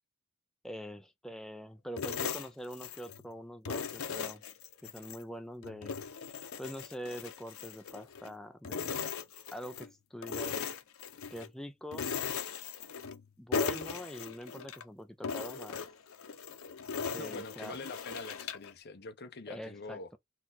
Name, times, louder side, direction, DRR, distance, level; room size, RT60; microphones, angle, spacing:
voice 1, 0.6-4.4 4.8-5.9 6.6-9.1 9.5-10.6 11.3-12.1 13.4-15.8 17.1-17.8 19.5-20.0, equal, ahead, 0.4 m, -44 dB
sound 1, 2.0-3.2 3.7-5.2 5.6-8.3 8.6-9.9 10.2-11.5 11.9-13.2 13.5-14.8 15.2-18.7, left 6 dB, 85° left, 0.7 m, -38 dB
voice 2, 17.2-20.2, left 3 dB, 50° left, 0.7 m, -44 dB
4.4 x 2.3 x 3.9 m
head